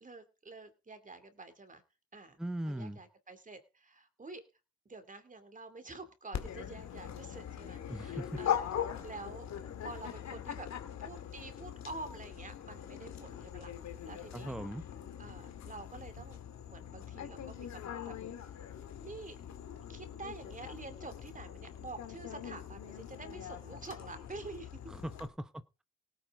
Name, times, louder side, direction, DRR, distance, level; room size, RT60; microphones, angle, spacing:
voice 1, 0.0-1.8 2.1-2.4 2.7-4.4 4.9-8.7 9.0-9.5 9.8-10.7 11.0-13.7 14.0-14.5 15.2-16.4 16.7-18.1 19.0-19.4 19.9-24.8, right 3 dB, 25° right, 2.5 m, -48 dB
voice 2, 2.4-3.0 7.9-8.3 14.3-14.8 24.9-25.8, right 1 dB, ahead, 0.9 m, -40 dB
Dog, 6.3-25.3, left 9 dB, 65° left, 2.0 m, -42 dB
18.0 x 9.2 x 3.7 m
cardioid pair, 90°, 30 cm